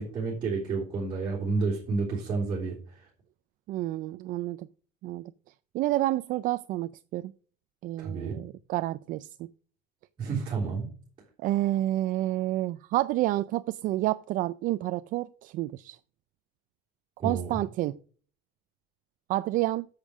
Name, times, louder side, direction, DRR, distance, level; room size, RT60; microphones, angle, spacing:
voice 1, 0.0-3.1 8.0-8.4 10.2-10.9 17.2-17.5, right 4 dB, 25° right, 3.6 m, -30 dB
voice 2, 3.7-4.7 5.0-5.3 5.7-7.3 7.8-9.5 11.4-16.0 17.2-18.0 19.3-19.9, right 16 dB, 45° right, 0.4 m, -29 dB
8.5 x 7.3 x 6.2 m
cardioid pair, 165°, 20 cm